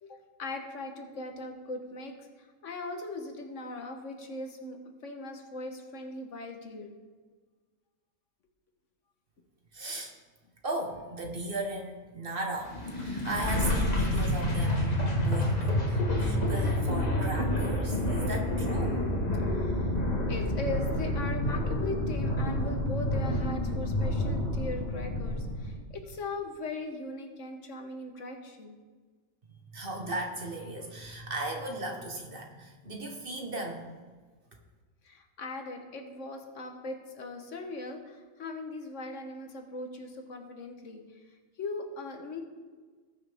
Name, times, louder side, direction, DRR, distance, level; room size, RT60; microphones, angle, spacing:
voice 1, 0.0-4.8 5.0-6.9 19.5-19.9 20.3-28.8 35.0-41.2 41.6-42.4, left 2 dB, 65° left, 4 dB, 1.5 m, -39 dB
voice 2, 9.7-10.1 10.6-19.0 29.7-33.9, right 1 dB, 45° right, 2 dB, 1.5 m, -37 dB
sound 1, 12.7-25.8, left 1 dB, 30° left, 1.6 m, -29 dB
19.0 x 6.5 x 3.5 m, 1.4 s
omnidirectional pair, 1.4 m